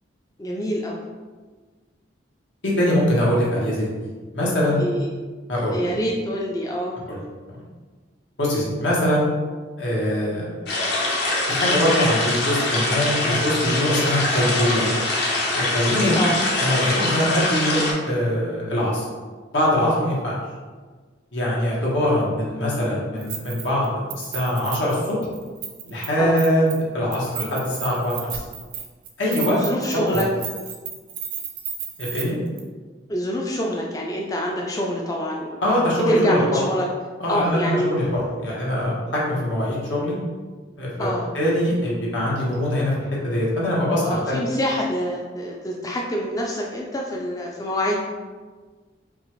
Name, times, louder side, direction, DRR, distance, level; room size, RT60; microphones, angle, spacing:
voice 1, 0.4-1.0 4.8-5.1 5.7-7.0 16.1-16.4 26.2-26.4 29.4-30.3 33.1-35.6 36.1-36.9 37.3-37.9 41.0-41.3 44.0-48.0, equal, 20° left, -2 dB, 0.3 m, -26 dB
voice 2, 2.6-3.9 4.3-4.8 5.5-5.8 7.1-7.2 7.5-7.6 8.4-9.3 9.8-10.6 11.5-14.9 15.5-16.2 16.6-19.0 19.5-20.3 21.3-25.2 25.9-28.1 29.2-29.6 29.9-30.2 32.0-32.4 35.6-36.6 37.2-40.2 40.8-41.1 41.3-44.4, equal, 80° left, -5 dB, 1.3 m, -22 dB
sound 1, 10.7-17.9, left 2 dB, 60° left, 0.9 m, -23 dB
Keys jangling, 23.2-23.9 24.1-26.1 26.4-26.8 27.1-32.2 32.6-32.7, right 8 dB, 50° right, 0.5 m, -33 dB
5.3 x 2.5 x 3.1 m, 1.4 s
head